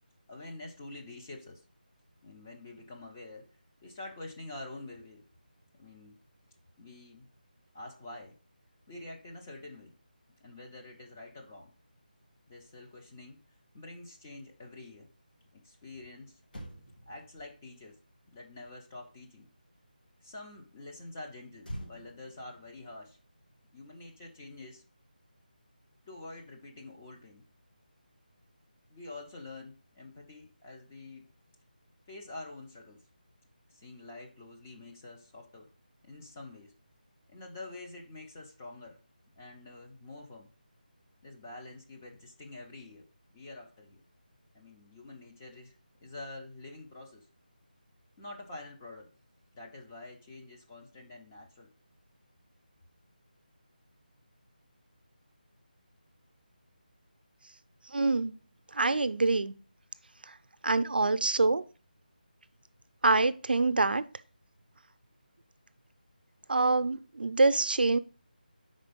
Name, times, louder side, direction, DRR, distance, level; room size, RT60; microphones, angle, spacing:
voice 1, 0.3-1.6 2.2-3.5 3.8-5.3 5.8-6.2 6.8-7.3 7.7-8.4 8.9-9.9 10.4-11.7 12.5-13.4 13.7-15.1 15.5-16.4 17.1-18.0 18.3-19.5 20.2-23.2 23.7-24.8 26.0-27.5 28.9-31.3 32.1-33.0 33.7-35.7 36.0-36.7 37.3-39.0 39.4-40.5 41.2-43.1 43.3-44.0 44.5-45.7 46.0-47.3 48.2-49.1 49.5-51.7, left 2 dB, 15° left, 0.6 m, -47 dB
Motor vehicle (road), 16.4-20.0 21.6-24.2 24.5-24.7, equal, 70° left, 1.6 m, -49 dB
voice 2, 57.9-58.3 58.7-59.6 60.6-61.6 63.0-64.0 66.5-68.0, right 3 dB, 85° right, 0.5 m, -25 dB
5.2 x 4.3 x 5.1 m
figure-of-eight pair, 175°, 5 cm